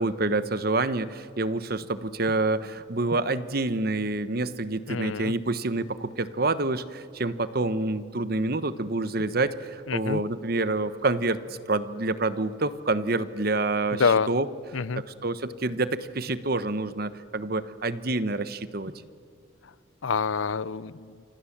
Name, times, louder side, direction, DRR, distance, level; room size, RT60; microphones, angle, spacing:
voice 1, 0.0-14.5 15.2-18.9, right 2 dB, 50° right, 13 dB, 1.1 m, -27 dB
voice 2, 4.9-5.3 9.9-10.2 13.9-14.3 14.7-15.0 19.6-19.7 20.0-21.2, left 5 dB, 80° left, 19 dB, 0.6 m, -27 dB
28.0 x 26.0 x 7.4 m, 2.4 s
head